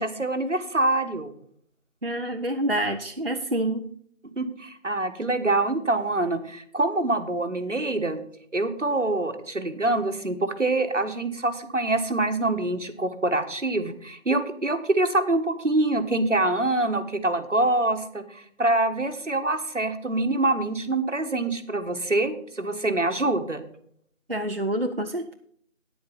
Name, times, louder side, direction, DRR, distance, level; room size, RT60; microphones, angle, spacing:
voice 1, 0.0-1.3 4.4-8.2 8.5-23.6, right 2 dB, 70° right, 8 dB, 1.4 m, -25 dB
voice 2, 2.0-3.9 24.3-25.3, right 1 dB, 50° right, 5 dB, 0.6 m, -27 dB
9.7 x 7.7 x 5.6 m, 0.64 s
figure-of-eight pair, 175°, 38 cm